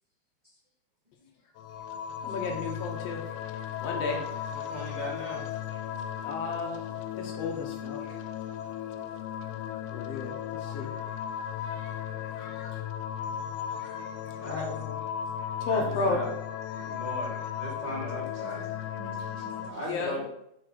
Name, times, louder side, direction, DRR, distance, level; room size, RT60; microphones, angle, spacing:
sound 1, 1.6-19.7, left 9 dB, 90° left, 2.1 m, -36 dB
voice 1, 2.2-3.2 3.8-4.2 6.2-6.8 7.1-8.0 9.9-11.2 11.6-12.8 13.5-14.1 14.4-14.9 15.6-16.2 16.8-16.9 19.9-20.2, left 4 dB, 65° left, 2 dB, 1.8 m, -34 dB
voice 2, 3.9-4.2 4.5-5.4 10.8-11.0 11.7-11.8 13.2-13.8 14.4-14.7 15.7-16.3 16.8-18.6 19.6-20.3, equal, 30° right, -5 dB, 0.8 m, -38 dB
voice 3, 17.9-20.3, right 4 dB, 75° right, 1 dB, 2.8 m, -50 dB
6.2 x 4.8 x 4.9 m, 0.80 s
omnidirectional pair, 3.4 m